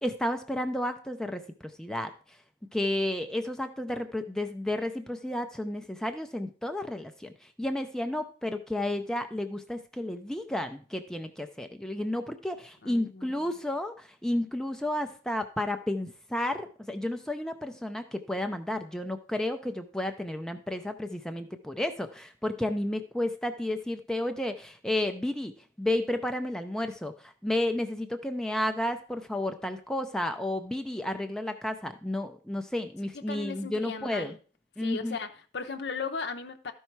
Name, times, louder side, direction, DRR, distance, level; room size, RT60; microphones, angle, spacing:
voice 1, 0.0-2.4 2.7-25.5 25.8-34.4 34.8-35.2, left 1 dB, 5° left, 6 dB, 0.5 m, -32 dB
voice 2, 12.8-13.3 33.3-34.3 34.8-36.7, left 4 dB, 65° left, 7 dB, 0.7 m, -37 dB
13.0 x 5.5 x 4.6 m, 0.40 s
head